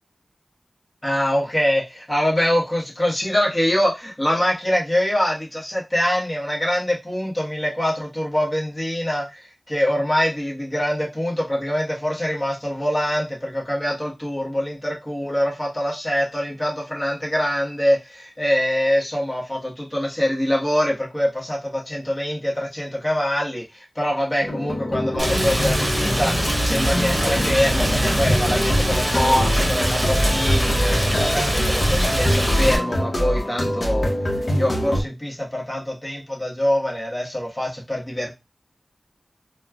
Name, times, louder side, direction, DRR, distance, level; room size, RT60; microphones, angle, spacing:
voice 1, 1.0-23.6 23.9-34.1 34.5-38.3, equal, 30° left, -3 dB, 1.3 m, -24 dB
sound 1, 24.4-35.0, equal, 60° left, 0.9 m, -24 dB
Rain, 25.2-32.8, equal, 25° right, 1.0 m, -23 dB
4.2 x 2.3 x 2.4 m, 0.24 s
cardioid pair, 40°, 0 cm